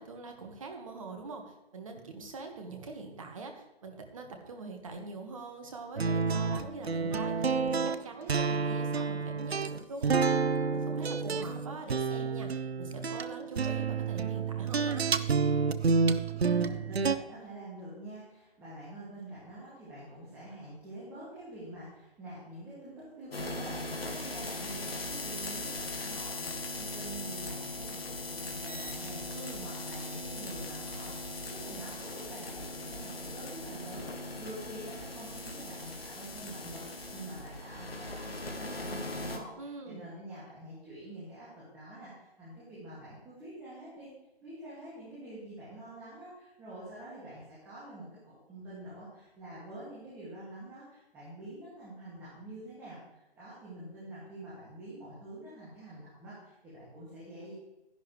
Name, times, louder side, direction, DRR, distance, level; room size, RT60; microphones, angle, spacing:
voice 1, 0.0-7.5 7.7-10.4 10.7-15.0 29.3-29.7 39.6-40.1, right 3 dB, 35° right, 3 dB, 1.6 m, -43 dB
sound 1, 6.0-17.2, right 5 dB, 80° right, 0.7 m, -29 dB
voice 2, 16.3-44.1 44.4-57.5, right 1 dB, 5° right, -10 dB, 2.1 m, -46 dB
sound 2, 23.3-39.4, left 2 dB, 70° left, 2.1 m, -39 dB
11.5 x 11.0 x 3.2 m, 0.97 s
figure-of-eight pair, 160°, 31 cm